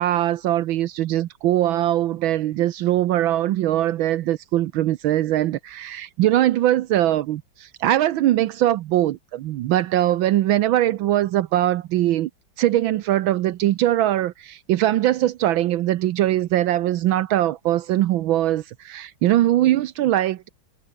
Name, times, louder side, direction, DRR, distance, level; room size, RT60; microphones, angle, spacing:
voice 1, 0.0-12.3 12.6-20.5, right 13 dB, 75° right, 1.5 m, -21 dB
omnidirectional pair, 2.2 m